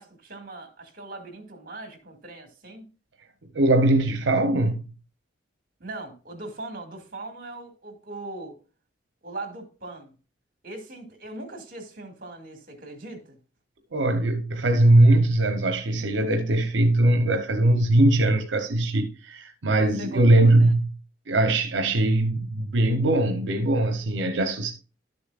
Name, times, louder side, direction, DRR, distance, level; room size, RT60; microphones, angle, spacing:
voice 1, 0.0-2.9 5.8-8.6 9.2-10.1 10.6-13.4 20.0-20.7, right 2 dB, 50° right, 2.1 m, -40 dB
voice 2, 3.5-4.8 13.9-20.9 21.3-24.7, right 1 dB, 80° right, 0.8 m, -21 dB
12.0 x 6.9 x 2.4 m
head